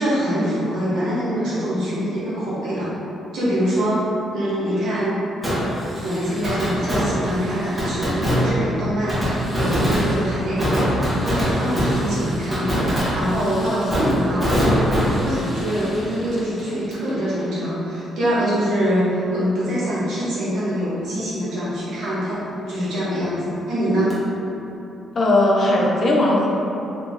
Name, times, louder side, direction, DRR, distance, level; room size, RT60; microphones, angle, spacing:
voice 1, 0.0-2.9 3.3-4.0 4.3-5.2 6.0-14.9 15.2-24.1, equal, 75° right, -10 dB, 1.4 m, -24 dB
Fireworks, 5.4-17.1 17.4-17.5 24.1-24.2, equal, 15° right, 1.2 m, -23 dB
voice 2, 25.2-26.5, left 1 dB, 45° left, -2 dB, 0.6 m, -17 dB
3.0 x 2.8 x 3.6 m, 3.0 s
cardioid pair, 90°, 0 cm